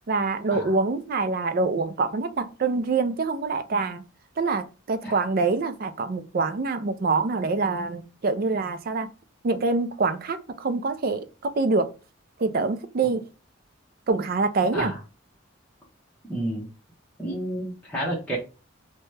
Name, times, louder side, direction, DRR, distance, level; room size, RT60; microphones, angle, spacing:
voice 1, 0.1-4.0 4.4-9.1 9.4-11.9 12.4-13.2 14.1-14.9, right 3 dB, 45° right, 0.4 m, -25 dB
voice 2, 16.3-16.7 17.2-18.4, right 1 dB, 5° left, 0.8 m, -30 dB
2.9 x 2.2 x 3.1 m
head